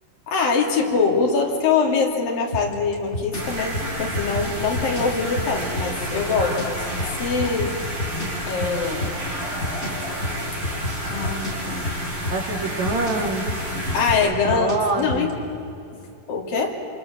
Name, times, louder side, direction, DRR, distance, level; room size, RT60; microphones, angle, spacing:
voice 1, 0.3-7.8 8.5-9.1 11.1-11.9 13.9-15.3 16.3-16.8, left 5 dB, 85° left, 0 dB, 4.6 m, -23 dB
sound 1, 2.5-15.3, left 1 dB, 20° left, 4.3 m, -29 dB
sound 2, 3.3-14.1, equal, 25° right, 7.9 m, -30 dB
voice 2, 8.6-9.1 12.3-13.4 14.2-15.3, right 3 dB, 55° right, 2 dB, 3.8 m, -26 dB
27.5 x 26.0 x 7.5 m, 2.7 s
omnidirectional pair, 3.9 m